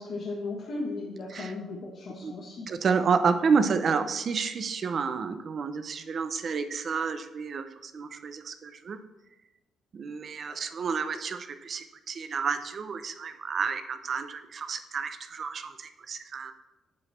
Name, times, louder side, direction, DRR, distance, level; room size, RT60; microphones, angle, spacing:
voice 1, 0.0-2.7, left 3 dB, 50° left, -4 dB, 1.5 m, -36 dB
voice 2, 2.7-9.0 9.9-16.5, right 5 dB, 40° right, 9 dB, 0.6 m, -30 dB
9.3 x 5.0 x 4.3 m, 1.0 s
cardioid pair, 160°, 0 cm